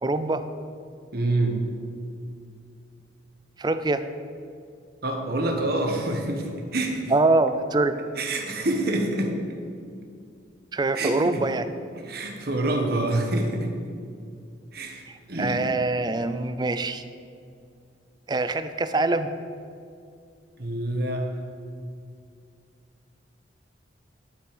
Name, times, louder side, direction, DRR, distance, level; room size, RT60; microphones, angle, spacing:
voice 1, 0.0-0.4 3.6-4.0 7.1-8.0 10.7-11.6 15.4-17.0 18.3-19.3, right 2 dB, 25° right, 11 dB, 0.4 m, -24 dB
voice 2, 1.1-1.6 5.0-7.1 8.2-9.4 10.9-11.4 12.0-13.7 14.7-15.6 20.6-21.2, right 2 dB, 55° right, 3 dB, 1.3 m, -27 dB
11.5 x 5.9 x 5.0 m, 2.4 s
head